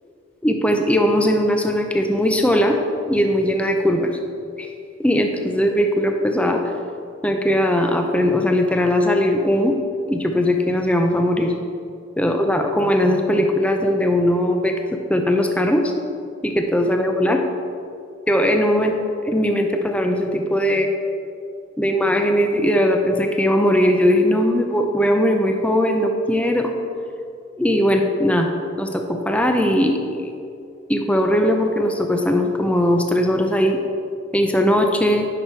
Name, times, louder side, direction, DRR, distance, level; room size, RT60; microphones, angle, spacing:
voice 1, 0.4-2.8 3.1-4.1 4.6-4.7 5.0-6.6 7.2-9.7 10.1-11.5 12.2-14.7 15.1-15.9 16.4-17.4 18.3-19.0 19.2-20.9 21.8-26.7 27.6-28.5 28.8-30.0 30.9-33.8 34.3-35.3, equal, 5° left, 4 dB, 0.5 m, -19 dB
9.9 x 5.9 x 4.5 m, 2.4 s
head